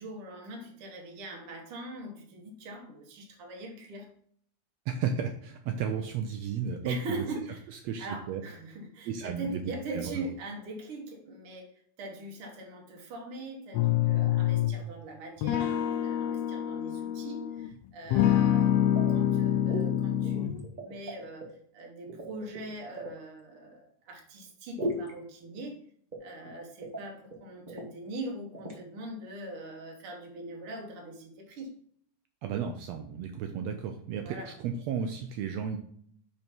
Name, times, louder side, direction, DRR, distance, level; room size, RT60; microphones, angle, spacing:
voice 1, 0.0-4.1 6.8-7.6 8.0-21.5 21.7-25.8 26.2-31.7 34.2-34.5, right 2 dB, 55° right, 1 dB, 2.0 m, -42 dB
voice 2, 4.9-7.2 7.8-8.4 9.1-9.6 9.9-10.3 32.4-35.8, right 7 dB, 80° right, 5 dB, 1.6 m, -33 dB
sound 1, 13.7-14.8 15.4-17.7 18.1-20.7, left 11 dB, 85° left, 1.4 m, -26 dB
sound 2, 18.9-19.4 19.7-19.9 20.2-21.5 22.1-23.2 24.8-25.1 26.1-26.5 26.8-27.0 27.3-27.4 27.7-27.9 28.5-28.8, right 1 dB, 35° right, 0.7 m, -37 dB
5.6 x 5.5 x 4.5 m, 0.62 s
omnidirectional pair, 3.4 m